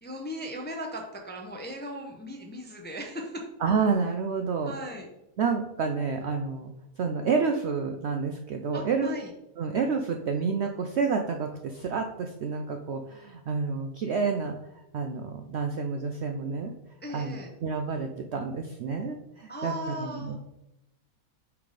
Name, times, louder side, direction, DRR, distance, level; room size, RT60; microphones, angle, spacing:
voice 1, 0.0-3.4 4.6-5.1 8.7-9.3 17.0-17.5 19.5-20.4, equal, 10° left, 2 dB, 0.5 m, -37 dB
voice 2, 3.6-4.7 5.4-6.7 7.0-9.1 9.6-14.6 14.9-16.7 17.1-19.7 20.0-20.4, right 5 dB, 65° right, 4 dB, 0.6 m, -29 dB
5.8 x 4.0 x 4.8 m, 0.89 s
omnidirectional pair, 1.6 m